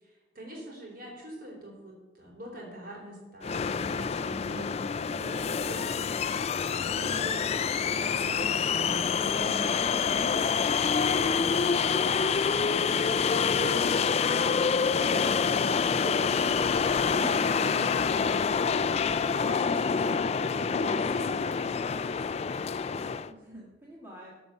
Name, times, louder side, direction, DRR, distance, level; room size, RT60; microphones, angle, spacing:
voice 1, 0.0-6.2 6.9-12.3 13.1-21.5, right 1 dB, 50° right, -2 dB, 3.8 m, -43 dB
sound 1, 3.4-23.3, left 6 dB, 35° left, 0.3 m, -27 dB
voice 2, 22.9-24.3, equal, 10° right, -6 dB, 1.7 m, -50 dB
13.5 x 5.4 x 7.0 m, 1.2 s
head